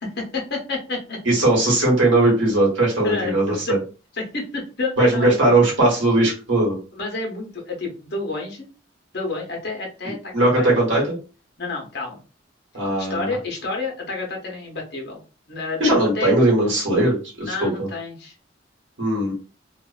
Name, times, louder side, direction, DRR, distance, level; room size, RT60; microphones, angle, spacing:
voice 1, 0.0-1.2 3.0-3.8 4.1-5.6 6.9-8.7 9.1-10.9 11.6-12.2 13.0-15.2 15.5-16.4 17.4-18.3, left 3 dB, 60° left, 0 dB, 0.8 m, -29 dB
voice 2, 1.2-3.8 5.0-6.8 10.3-11.2 12.7-13.3 15.8-17.9 19.0-19.3, right 2 dB, 80° right, -3 dB, 1.2 m, -19 dB
2.5 x 2.1 x 2.4 m, 0.34 s
head